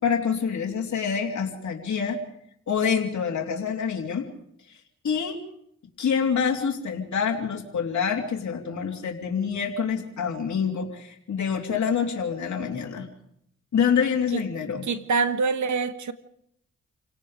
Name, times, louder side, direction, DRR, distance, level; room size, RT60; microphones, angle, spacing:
voice 1, 0.0-2.2 2.7-4.3 4.7-4.8 5.0-5.4 6.0-13.1 13.7-14.8, left 6 dB, 70° left, 0 dB, 3.2 m, -26 dB
voice 2, 14.8-16.1, right 4 dB, 75° right, 10 dB, 1.6 m, -25 dB
28.5 x 17.5 x 5.2 m, 0.72 s
cardioid pair, 60°, 29 cm